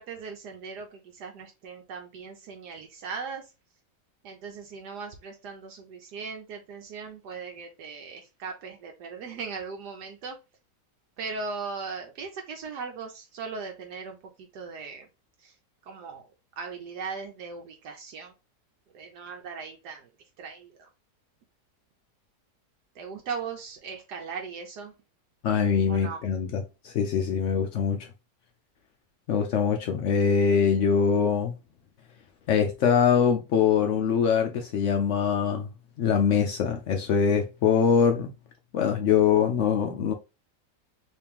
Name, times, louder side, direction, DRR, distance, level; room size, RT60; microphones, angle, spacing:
voice 1, 0.0-3.5 4.2-10.4 11.2-15.1 15.4-15.5 15.8-16.3 16.6-18.3 18.9-20.1 20.4-20.9 22.9-24.9 25.9-26.2, right 5 dB, 75° right, 1.2 m, -38 dB
voice 2, 25.4-28.1 29.3-31.5 32.5-35.7 36.0-38.3 38.7-40.1, left 7 dB, 90° left, 0.6 m, -23 dB
3.2 x 2.9 x 3.4 m
omnidirectional pair, 1.9 m